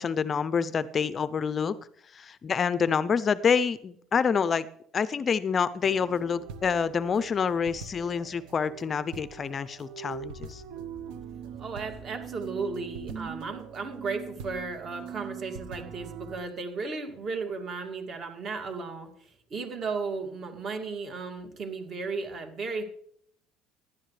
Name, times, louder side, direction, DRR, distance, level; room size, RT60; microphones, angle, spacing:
voice 1, 0.0-1.8 2.1-4.7 4.9-10.6, left 6 dB, 30° left, 16 dB, 0.4 m, -27 dB
sound 1, 5.8-16.4, right 7 dB, 80° right, 1.0 m, -42 dB
voice 2, 11.6-22.8, right 4 dB, 40° right, 5 dB, 2.3 m, -35 dB
16.0 x 11.0 x 3.2 m, 0.66 s
cardioid pair, 135°, 0 cm